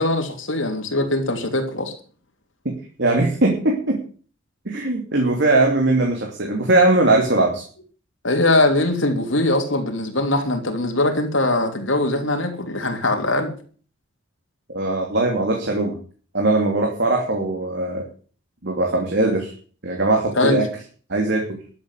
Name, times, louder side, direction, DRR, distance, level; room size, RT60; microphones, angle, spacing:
voice 1, 0.0-1.9 8.2-13.5 20.4-20.6, left 2 dB, 70° left, 4 dB, 3.2 m, -21 dB
voice 2, 2.6-4.0 4.6-7.6 14.7-16.0 16.3-18.1 18.6-19.5 19.8-20.7 21.1-21.6, right 2 dB, 60° right, 1 dB, 2.9 m, -20 dB
12.5 x 8.0 x 8.2 m, 0.42 s
head